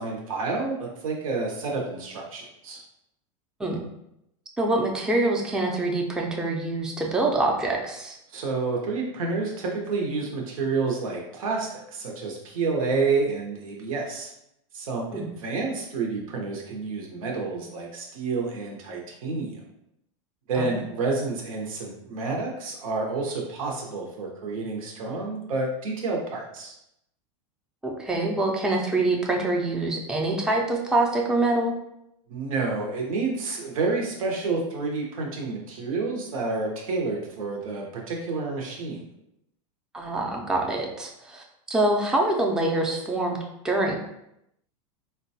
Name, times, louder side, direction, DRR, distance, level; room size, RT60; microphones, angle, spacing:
voice 1, 0.0-2.8 8.3-14.3 14.7-19.6 20.5-26.7 32.3-39.0, right 3 dB, 90° right, 0 dB, 0.7 m, -29 dB
voice 2, 4.6-8.2 15.1-15.2 20.6-20.7 27.8-31.7 39.9-43.4 43.6-44.0, right 2 dB, 5° right, 0 dB, 0.4 m, -25 dB
3.8 x 2.2 x 2.7 m, 0.81 s
supercardioid pair, 135°, 17 cm